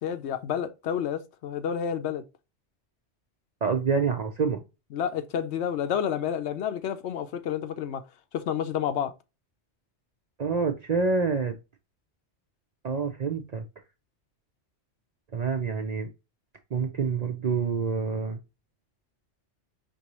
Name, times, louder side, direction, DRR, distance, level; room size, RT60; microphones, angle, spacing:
voice 1, 0.0-2.2 4.9-8.0 8.3-9.1, left 8 dB, 70° left, 0.8 m, -30 dB
voice 2, 3.6-4.6 10.4-11.6 12.8-13.6 15.3-16.1 16.7-18.4, right 5 dB, 50° right, 0.5 m, -27 dB
5.3 x 2.6 x 2.9 m
omnidirectional pair, 1.2 m